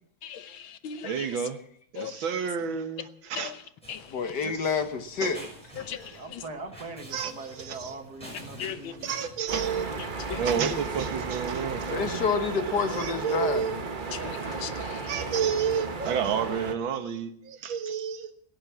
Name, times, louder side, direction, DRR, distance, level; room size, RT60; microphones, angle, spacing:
voice 1, 0.2-1.4 2.0-2.2 3.4-3.6 3.9-4.3 5.8-6.4 8.6-8.9 10.0-10.8 14.1-15.4, left 9 dB, 85° left, 1.7 m, -39 dB
voice 2, 1.0-1.6 1.9-3.5 4.4-4.7 5.2-5.3 7.1-8.0 9.0-9.9 10.4-12.1 12.9-13.8 15.1-18.3, right 7 dB, 80° right, 2.0 m, -30 dB
sound 1, 3.8-9.9, equal, 5° left, 6.4 m, -48 dB
voice 3, 4.1-5.4 11.9-13.7, left 5 dB, 60° left, 1.8 m, -28 dB
voice 4, 6.1-9.1, right 3 dB, 55° right, 2.4 m, -41 dB
sound 2, 9.5-16.8, right 4 dB, 30° right, 1.0 m, -34 dB
16.5 x 10.5 x 7.4 m
omnidirectional pair, 2.1 m